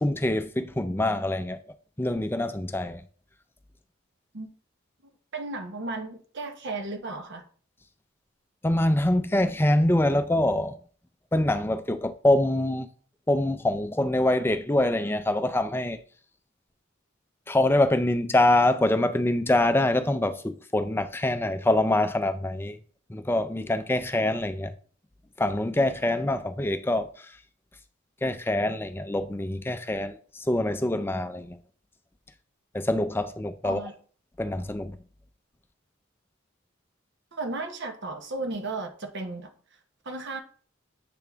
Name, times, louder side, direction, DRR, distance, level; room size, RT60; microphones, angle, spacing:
voice 1, 0.0-1.6 2.0-3.0 8.6-10.8 11.3-12.9 13.3-16.0 17.5-22.8 23.1-24.7 25.4-27.1 28.2-30.2 30.5-31.6 32.7-33.8 34.4-35.0, left 1 dB, 10° left, 0.4 m, -25 dB
voice 2, 5.0-7.4 33.6-33.9 37.3-39.5 40.0-40.4, right 3 dB, 60° right, 1.0 m, -34 dB
7.6 x 3.5 x 3.5 m
head